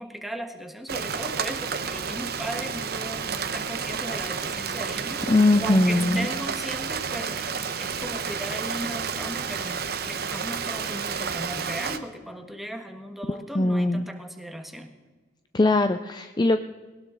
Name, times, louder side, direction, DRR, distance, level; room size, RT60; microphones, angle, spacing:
voice 1, 0.0-5.3 5.6-14.9, equal, ahead, 4 dB, 1.4 m, -37 dB
Rain, 0.9-12.0, right 6 dB, 55° right, 1.0 m, -31 dB
voice 2, 5.3-6.3 13.3-14.1 15.5-16.7, left 2 dB, 20° left, 8 dB, 0.4 m, -21 dB
20.0 x 18.5 x 3.9 m, 1.3 s
head